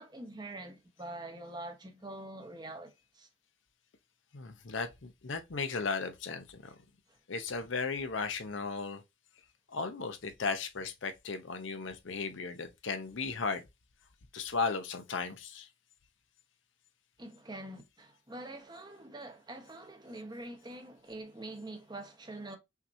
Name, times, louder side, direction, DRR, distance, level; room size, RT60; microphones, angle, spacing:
voice 1, 0.0-3.3 17.2-22.6, right 2 dB, 20° right, 1.0 m, -45 dB
voice 2, 4.3-6.7 7.3-9.0 9.7-13.6 14.3-15.7, left 4 dB, 65° left, 0.7 m, -36 dB
5.8 x 2.9 x 2.6 m
head